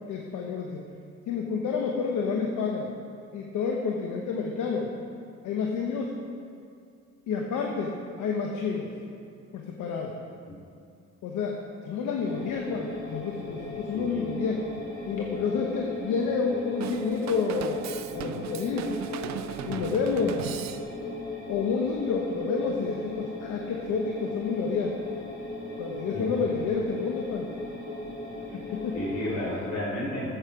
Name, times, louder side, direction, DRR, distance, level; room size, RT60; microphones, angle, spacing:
voice 1, 0.1-0.8 1.3-2.9 3.3-4.9 5.4-6.2 7.3-8.9 9.5-10.1 11.2-14.7 15.1-19.0 19.7-20.4 21.5-24.9 25.8-27.5 28.5-29.0, left 5 dB, 80° left, 1 dB, 1.1 m, -29 dB
sound 1, 12.2-29.7, left 2 dB, 35° left, 3.4 m, -38 dB
voice 2, 13.9-14.3 26.1-26.2 28.5-28.6 28.9-30.4, left 1 dB, 65° left, -4 dB, 3.4 m, -32 dB
Drum kit / Drum, 16.8-21.2, right 10 dB, 65° right, 0.5 m, -37 dB
14.5 x 7.9 x 5.0 m, 2.4 s
cardioid pair, 90°, 30 cm